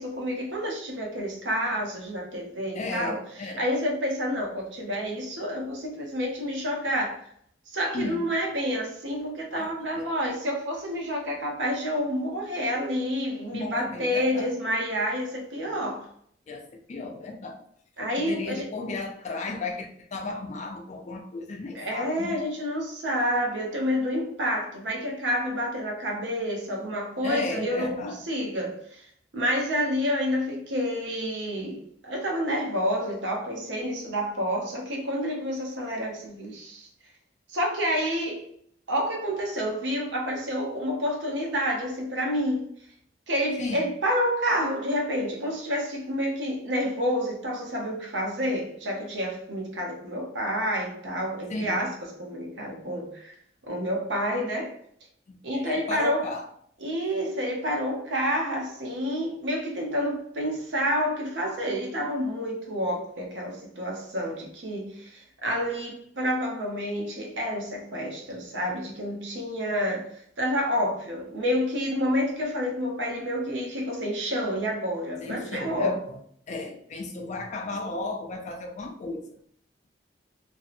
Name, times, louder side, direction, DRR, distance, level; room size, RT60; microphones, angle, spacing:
voice 1, 0.0-7.2 7.7-16.1 18.0-18.7 21.7-29.1 29.3-36.9 37.5-38.4 38.9-42.7 43.3-53.3 53.6-54.7 55.4-56.3 56.8-70.1 70.4-76.0, equal, 75° right, 0.7 m, -29 dB
voice 2, 2.7-3.6 7.9-8.2 9.5-10.1 13.5-14.5 16.5-17.6 18.2-22.4 27.2-28.2 43.6-43.9 51.5-51.8 55.3-56.5 75.2-76.2 76.5-79.3, left 3 dB, 40° left, 0.4 m, -35 dB
2.6 x 2.0 x 2.5 m
head